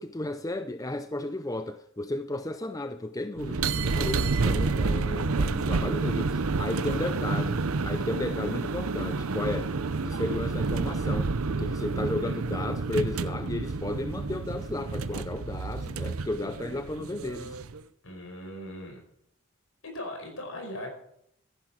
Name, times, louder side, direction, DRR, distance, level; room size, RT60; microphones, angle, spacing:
voice 1, 0.0-9.7 10.0-17.6, left 2 dB, 15° left, 0.5 m, -34 dB
sound 1, 3.4-17.8, right 3 dB, 75° right, 0.7 m, -29 dB
voice 2, 6.9-7.5 10.2-10.3 18.0-19.0 19.8-20.9, left 1 dB, 70° left, 5.1 m, -40 dB
14.0 x 11.0 x 6.1 m
head